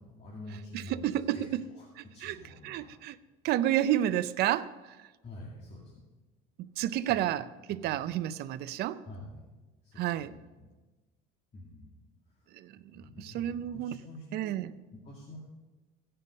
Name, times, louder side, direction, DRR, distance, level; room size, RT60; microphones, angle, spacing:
voice 1, 0.0-2.9 5.2-5.9 7.1-7.2 7.8-8.1 9.0-9.4 9.8-10.7 11.5-12.5 12.9-14.6 14.9-15.4, left 1 dB, 35° left, 2.2 m, -48 dB
voice 2, 0.7-1.6 2.2-2.4 2.6-3.2 3.4-5.0 6.6-9.0 10.0-10.3 12.5-14.0 14.3-14.7, right 12 dB, 60° right, 0.5 m, -31 dB
16.0 x 5.6 x 5.2 m
supercardioid pair, 105°, 19 cm